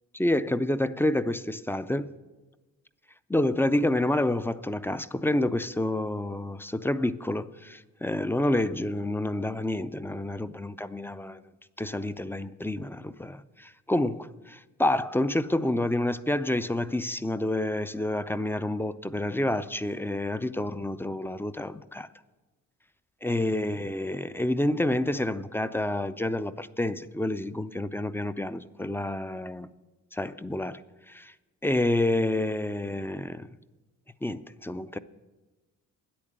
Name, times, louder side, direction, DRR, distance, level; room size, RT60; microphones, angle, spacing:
voice 1, 0.1-2.1 3.3-11.4 11.8-22.1 23.2-29.7 30.1-30.8 31.1-31.3 31.6-33.5 34.2-35.0, left 1 dB, 5° left, 0.3 m, -28 dB
10.0 x 8.7 x 8.8 m
cardioid pair, 105°, 31 cm